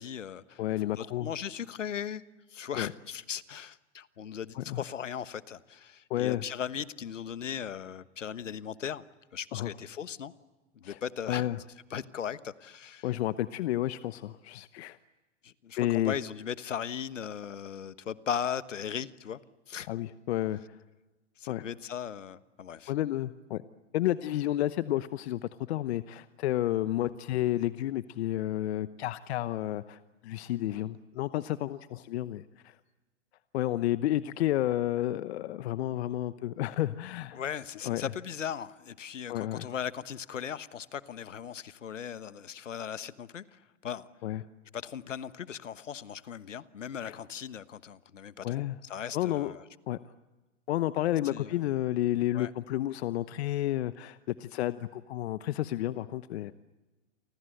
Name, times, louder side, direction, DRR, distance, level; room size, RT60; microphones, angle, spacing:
voice 1, 0.0-0.6 1.0-2.2 2.5-9.0 9.3-10.3 10.7-11.5 11.9-13.1 15.4-19.4 19.7-19.9 21.4-22.9 37.3-44.1 44.7-49.6 51.3-51.6 52.3-52.5, left 8 dB, 90° left, 14 dB, 1.3 m, -38 dB
voice 2, 0.6-1.3 2.8-2.9 4.5-4.8 6.1-6.4 9.5-9.7 10.8-11.0 11.3-11.6 13.0-15.0 15.8-16.1 19.9-20.8 21.5-21.7 22.9-23.6 23.9-32.8 33.5-37.4 37.8-38.1 39.3-39.7 44.2-44.4 47.0-47.2 48.4-48.8 49.1-49.6 49.9-50.0 50.7-56.5, left 14 dB, 60° left, 13 dB, 1.0 m, -31 dB
30.0 x 25.0 x 7.9 m, 1.2 s
hypercardioid pair, 120°, 36 cm